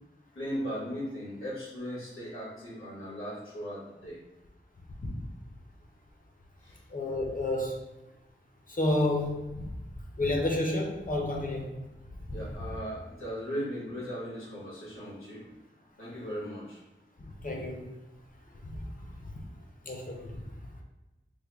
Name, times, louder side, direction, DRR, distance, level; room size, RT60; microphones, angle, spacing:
voice 1, 0.3-4.2 6.6-6.8 12.3-15.5 16.0-16.8, equal, 80° left, -7 dB, 1.5 m, -37 dB
voice 2, 6.9-7.7 8.7-9.7 10.2-11.7 12.3-12.4 17.2-17.9 18.6-18.9 19.2-19.3 19.8-20.4, left 1 dB, 40° left, 0 dB, 0.7 m, -30 dB
3.4 x 2.1 x 3.5 m, 1.0 s
wide cardioid pair, 60°, 21 cm